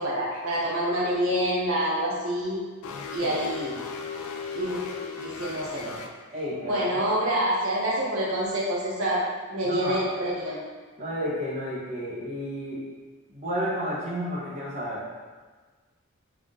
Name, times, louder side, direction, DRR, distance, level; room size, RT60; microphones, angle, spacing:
voice 1, 0.0-2.6 3.1-3.8 4.5-4.8 5.2-6.0 6.7-9.2 9.5-10.6, equal, 80° right, -6 dB, 0.9 m, -27 dB
sound 1, 2.8-6.1, left 5 dB, 85° left, 0.4 m, -36 dB
voice 2, 6.3-6.8 9.6-9.9 11.0-12.8 13.3-15.3, equal, 35° right, -8 dB, 1.0 m, -32 dB
3.6 x 2.6 x 3.6 m, 1.4 s
head